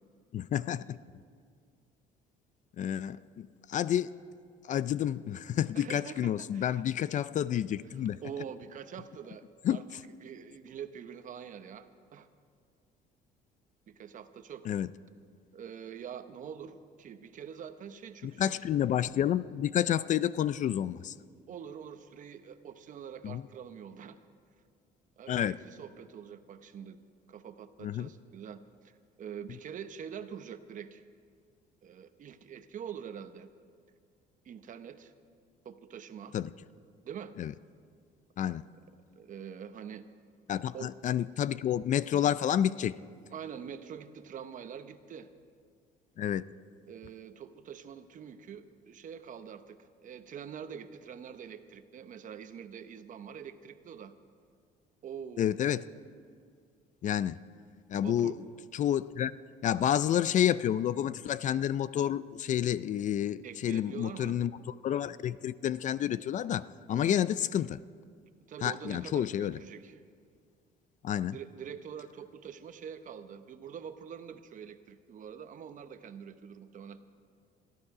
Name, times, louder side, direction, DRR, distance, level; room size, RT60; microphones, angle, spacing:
voice 1, 0.3-1.0 2.8-4.1 4.6-8.2 9.6-9.8 14.7-14.9 18.2-21.1 23.2-23.4 25.3-25.6 27.8-28.1 36.3-36.5 37.4-37.5 38.4-38.6 40.5-43.0 46.2-46.4 55.4-55.8 57.0-57.4 57.9-58.3 58.7-59.3 59.6-67.8 68.6-69.6 71.0-71.4, left 10 dB, 50° left, 17 dB, 0.4 m, -29 dB
voice 2, 5.7-6.8 7.9-9.8 10.2-12.3 13.9-14.7 15.5-18.5 21.5-24.2 25.2-27.0 27.3-31.0 31.8-33.5 34.4-35.1 35.6-36.4 37.0-37.3 39.2-40.0 40.7-40.9 43.3-45.3 46.9-54.1 55.0-55.7 58.0-58.4 63.4-64.4 66.9-67.3 68.5-69.9 71.3-77.0, right 8 dB, 50° right, 10 dB, 0.9 m, -45 dB
21.5 x 14.0 x 4.9 m, 2.1 s
cardioid pair, 110°, 17 cm